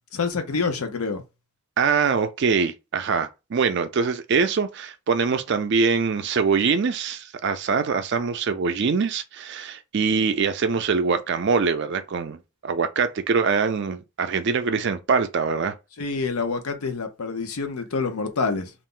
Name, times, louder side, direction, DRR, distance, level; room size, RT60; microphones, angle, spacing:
voice 1, 0.1-1.2 16.0-18.7, left 4 dB, 80° left, 0.6 m, -27 dB
voice 2, 1.8-15.7, right 5 dB, 50° right, 0.4 m, -23 dB
2.5 x 2.0 x 3.7 m
head